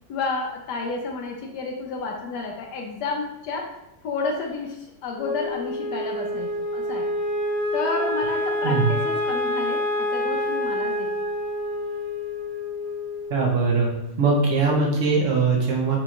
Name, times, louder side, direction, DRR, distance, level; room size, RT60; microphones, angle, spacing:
voice 1, 0.1-3.7 4.0-7.1 7.7-11.1, left 3 dB, 75° left, 1 dB, 1.1 m, -31 dB
Wind instrument woodwind instrument, 5.2-13.6, left 1 dB, 45° left, 1.3 m, -27 dB
voice 2, 13.3-13.9 14.2-16.0, right 4 dB, 55° right, -2 dB, 1.0 m, -21 dB
4.2 x 2.9 x 2.4 m, 0.87 s
omnidirectional pair, 1.9 m